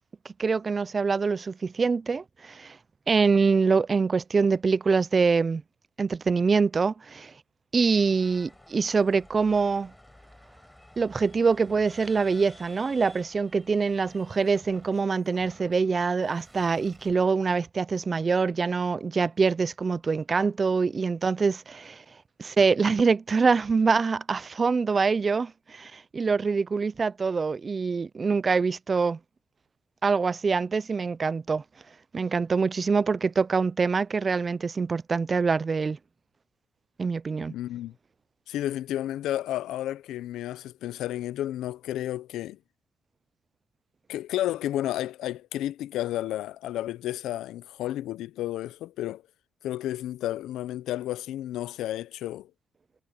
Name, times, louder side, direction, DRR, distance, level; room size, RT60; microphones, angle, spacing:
voice 1, 0.4-2.8 3.1-5.6 6.0-7.3 7.7-9.9 11.0-22.0 22.4-29.2 30.0-31.6 32.1-36.0 37.0-37.5, right 4 dB, 35° right, 0.4 m, -25 dB
sound 1, 7.9-14.6, left 1 dB, 10° left, 7.7 m, -53 dB
sound 2, 14.1-17.1, right 2 dB, 15° right, 5.4 m, -57 dB
voice 2, 37.5-37.9 38.5-42.6 44.1-49.2 49.6-52.5, left 13 dB, 85° left, 0.6 m, -32 dB
cardioid pair, 90°, 0 cm